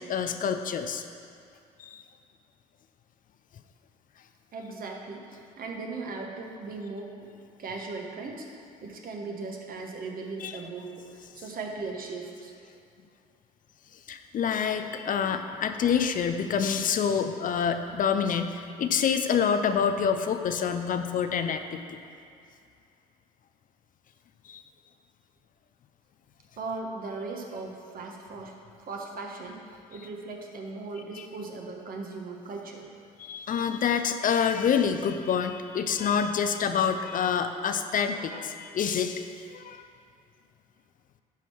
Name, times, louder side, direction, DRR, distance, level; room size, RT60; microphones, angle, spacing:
voice 1, 0.1-1.0 1.8-2.0 10.4-10.5 14.1-22.0 24.5-24.6 33.2-39.8, left 7 dB, 45° left, 8 dB, 0.6 m, -27 dB
voice 2, 4.5-7.3 7.6-11.1 11.3-12.5 26.6-28.5 28.8-32.9, right 3 dB, 50° right, 1 dB, 1.4 m, -38 dB
11.0 x 4.5 x 4.6 m, 2.4 s
hypercardioid pair, 60°, 19 cm